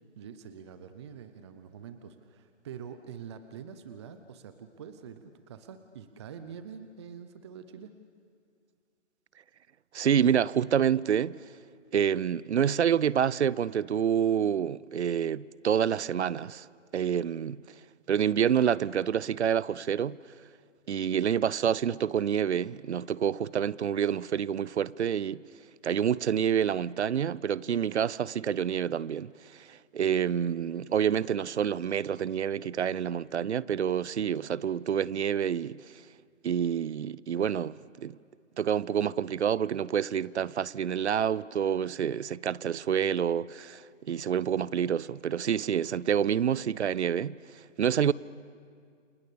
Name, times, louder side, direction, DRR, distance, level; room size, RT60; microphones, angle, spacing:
voice 1, 0.2-7.9, right 7 dB, 20° right, 0.7 m, -45 dB
voice 2, 9.9-11.4 11.9-16.7 16.9-17.6 18.1-20.2 20.9-25.4 25.8-35.8 36.4-38.2 38.6-48.1, right 8 dB, 60° right, 0.7 m, -28 dB
29.5 x 27.0 x 6.9 m
hypercardioid pair, 150°, 38 cm